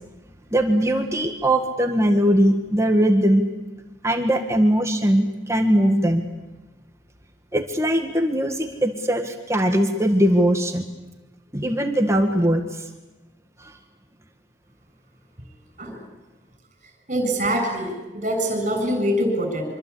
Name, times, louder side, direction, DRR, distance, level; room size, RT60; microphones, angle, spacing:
voice 1, 0.5-3.5 4.0-6.3 7.5-10.8 11.5-12.8 13.6-13.7, equal, 15° right, 4 dB, 1.9 m, -20 dB
voice 2, 17.1-19.6, equal, 40° right, 5 dB, 7.7 m, -24 dB
25.5 x 25.5 x 8.7 m, 1.1 s
head